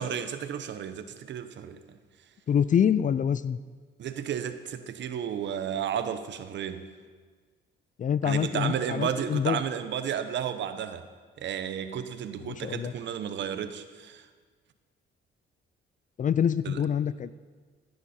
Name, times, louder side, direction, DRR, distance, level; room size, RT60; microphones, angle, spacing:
voice 1, 0.0-1.8 4.0-6.9 8.2-11.0 11.4-14.3 16.6-16.8, right 8 dB, 65° right, 0.9 m, -33 dB
voice 2, 2.5-3.6 8.0-9.6 12.5-12.9 16.2-17.3, left 8 dB, 40° left, 0.4 m, -26 dB
15.5 x 11.0 x 4.3 m
cardioid pair, 90°, 20 cm